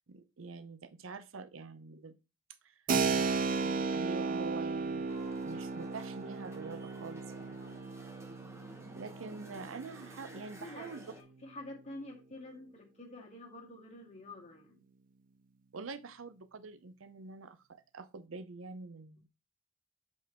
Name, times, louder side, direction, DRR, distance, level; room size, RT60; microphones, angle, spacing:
voice 1, 0.1-2.1 2.6-2.8 3.1-5.1 5.4-7.6 8.9-11.2 15.7-19.3, right 4 dB, 85° right, 0.6 m, -46 dB
Keyboard (musical), 2.9-11.3, right 4 dB, 45° right, 0.6 m, -35 dB
sound 1, 5.1-11.2, right 1 dB, 15° right, 0.9 m, -53 dB
voice 2, 7.5-8.1 10.6-14.8, left 1 dB, 35° left, 2.1 m, -49 dB
5.4 x 5.2 x 4.4 m
head